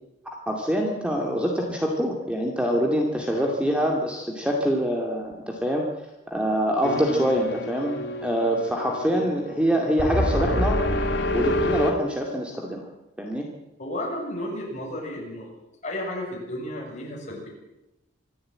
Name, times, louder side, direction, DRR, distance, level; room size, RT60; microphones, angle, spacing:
voice 1, 0.5-5.8 6.3-10.8 11.3-12.8 13.2-13.5, equal, 5° right, 0 dB, 2.4 m, -25 dB
sound 1, 6.8-11.9, left 1 dB, 55° left, 2.4 m, -27 dB
voice 2, 13.8-15.5 15.8-17.5, left 1 dB, 35° left, -1 dB, 7.5 m, -33 dB
26.0 x 13.0 x 8.8 m, 0.95 s
head